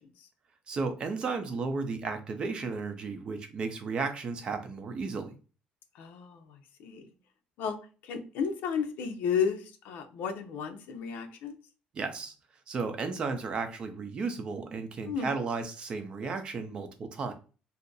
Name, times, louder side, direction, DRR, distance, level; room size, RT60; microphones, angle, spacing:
voice 1, 0.7-5.4 11.9-12.3 12.7-17.3, right 4 dB, 30° right, 7 dB, 0.5 m, -34 dB
voice 2, 5.9-7.1 7.6-11.5 15.0-15.3, left 6 dB, 75° left, 7 dB, 0.6 m, -33 dB
2.7 x 2.5 x 3.8 m, 0.35 s
cardioid pair, 175°, 3 cm